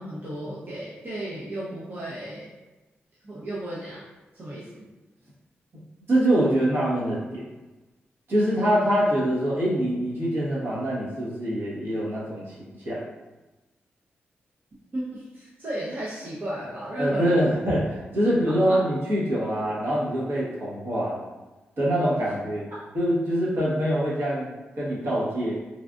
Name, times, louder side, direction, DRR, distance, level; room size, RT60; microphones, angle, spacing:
voice 1, 0.0-2.5 3.2-4.0 4.3-4.8 14.9-17.5 18.5-18.8 22.2-22.3 22.7-22.8, right 1 dB, 45° right, -9 dB, 0.8 m, -34 dB
voice 2, 6.1-7.4 8.3-13.0 17.0-17.8 18.1-21.3 21.8-22.7 22.9-24.5 24.8-25.6, equal, 60° right, -8 dB, 1.2 m, -24 dB
3.3 x 2.4 x 2.4 m, 1.1 s
cardioid pair, 50°, 4 cm